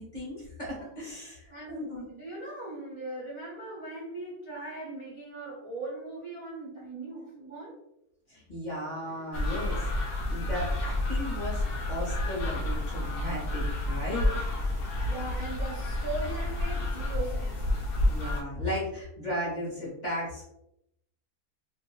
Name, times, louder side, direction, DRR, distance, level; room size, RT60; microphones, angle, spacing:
voice 1, 0.0-2.0 8.3-9.9 10.3-11.6 11.9-14.5 18.1-20.5, equal, 40° left, -5 dB, 0.7 m, -35 dB
voice 2, 1.5-7.7 15.0-17.6, right 2 dB, 40° right, -7 dB, 0.4 m, -39 dB
sound 1, 9.3-18.4, left 1 dB, 85° left, 0.5 m, -30 dB
2.6 x 2.2 x 3.0 m, 0.81 s
omnidirectional pair, 1.6 m